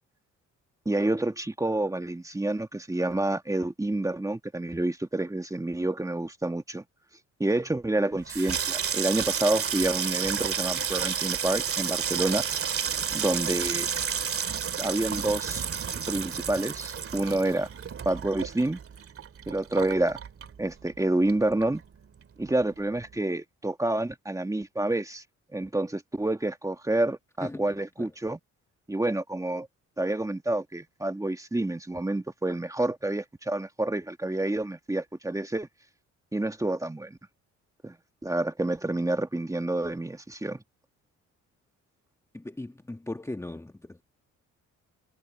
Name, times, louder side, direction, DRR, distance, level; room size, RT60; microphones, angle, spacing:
voice 1, 0.9-6.8 7.4-12.4 13.1-13.9 14.8-15.7 16.1-17.7 18.1-18.8 19.5-20.2 20.6-21.8 22.4-25.2 25.5-28.4 28.9-29.7 30.0-35.7 36.3-37.2 37.8-38.0 38.2-40.6, right 2 dB, 10° right, 1.9 m, -28 dB
Water tap faucet / Sink (filling or washing), 8.1-21.0 21.3-21.9 22.2-22.5, right 7 dB, 45° right, 2.5 m, -31 dB
voice 2, 27.4-27.7 28.0-28.1 42.3-44.0, left 2 dB, 10° left, 1.4 m, -38 dB
cardioid pair, 90°, 30 cm